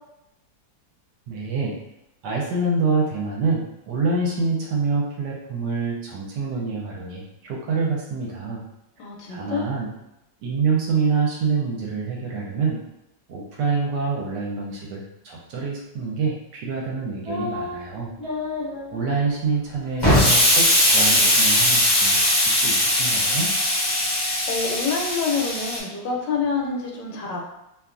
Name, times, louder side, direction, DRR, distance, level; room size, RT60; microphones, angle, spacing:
voice 1, 1.3-1.8 2.2-8.6 9.3-9.9 10.4-12.8 13.3-18.1 18.9-20.7 20.9-23.5, right 4 dB, 75° right, -2 dB, 1.2 m, -26 dB
voice 2, 9.0-9.6 24.5-27.4, left 5 dB, 75° left, 0 dB, 1.2 m, -27 dB
sound 1, 17.3-17.8 18.2-19.4 19.7-19.8 20.2-20.6 20.8-21.7, left 3 dB, 5° right, 0.8 m, -33 dB
Explosion, 20.0-25.8, left 1 dB, 35° left, 0.4 m, -19 dB
2.9 x 2.3 x 2.4 m, 0.87 s
omnidirectional pair, 2.0 m